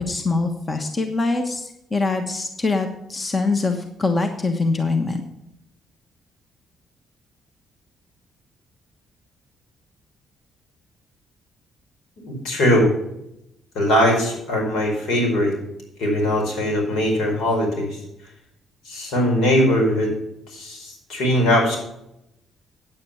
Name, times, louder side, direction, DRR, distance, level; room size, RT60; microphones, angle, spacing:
voice 1, 0.0-5.2, left 3 dB, 25° left, 6 dB, 1.2 m, -23 dB
voice 2, 12.3-12.9 13.7-15.5 16.0-18.0 18.8-20.1 20.5-21.8, equal, 80° left, 0 dB, 4.8 m, -20 dB
9.0 x 8.6 x 5.7 m, 0.83 s
cardioid pair, 90°, 0 cm